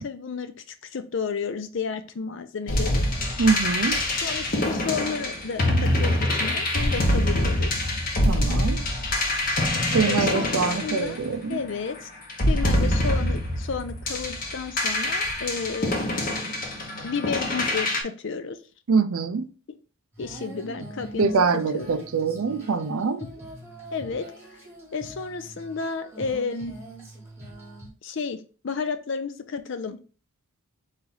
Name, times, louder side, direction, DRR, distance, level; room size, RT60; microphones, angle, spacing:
voice 1, 0.0-0.5 0.9-3.0 4.2-7.7 10.0-11.2 11.5-12.1 12.5-16.1 17.0-18.6 20.2-22.0 23.2-23.4 23.9-24.3 24.9-26.7 28.0-30.0, left 5 dB, 55° left, 0.5 m, -32 dB
sound 1, 2.7-11.7 12.3-18.0, left 1 dB, 40° left, 0.9 m, -25 dB
voice 2, 3.4-4.0 8.2-8.8 9.9-11.6 18.9-19.5 21.2-23.2, right 5 dB, 75° right, 0.5 m, -24 dB
Female singing, 20.1-27.9, right 1 dB, 10° right, 1.3 m, -43 dB
4.0 x 3.2 x 3.8 m
head